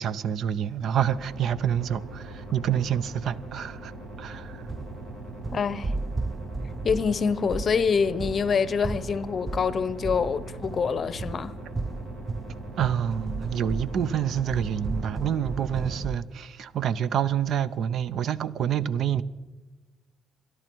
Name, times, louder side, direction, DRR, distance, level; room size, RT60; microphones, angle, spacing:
voice 1, 0.0-3.9 4.2-4.6 12.8-19.2, right 9 dB, 70° right, 0.6 m, -27 dB
sound 1, 1.0-16.0, right 2 dB, 55° right, 6.0 m, -41 dB
sound 2, 4.4-16.2, right 3 dB, 20° right, 0.4 m, -35 dB
voice 2, 5.5-5.9 6.8-11.5, left 6 dB, 45° left, 0.8 m, -26 dB
25.5 x 11.5 x 4.6 m
cardioid pair, 90°, 0 cm